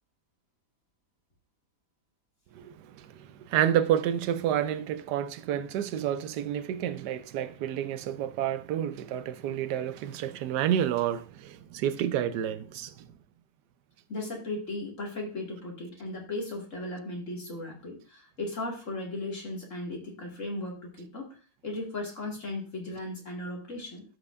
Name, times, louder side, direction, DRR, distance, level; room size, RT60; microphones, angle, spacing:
voice 1, 2.5-13.1, right 10 dB, 70° right, 1.1 m, -29 dB
voice 2, 14.1-21.3 21.6-24.0, left 2 dB, 40° left, 2.4 m, -36 dB
14.0 x 5.4 x 2.5 m
omnidirectional pair, 2.0 m